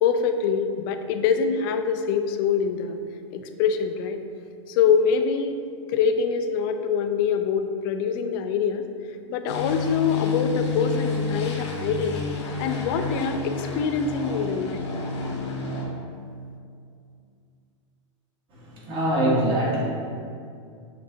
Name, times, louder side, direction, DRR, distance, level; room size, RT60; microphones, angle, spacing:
voice 1, 0.0-3.0 3.3-4.2 4.7-5.6 5.9-8.9 9.3-12.2 12.6-14.9, left 6 dB, 45° left, 7 dB, 0.4 m, -24 dB
sound 1, 9.5-15.9, left 4 dB, 65° left, 0.9 m, -30 dB
voice 2, 18.5-19.8, right 1 dB, 30° right, -5 dB, 1.3 m, -23 dB
6.7 x 2.6 x 2.6 m, 2.3 s
hypercardioid pair, 100°, 16 cm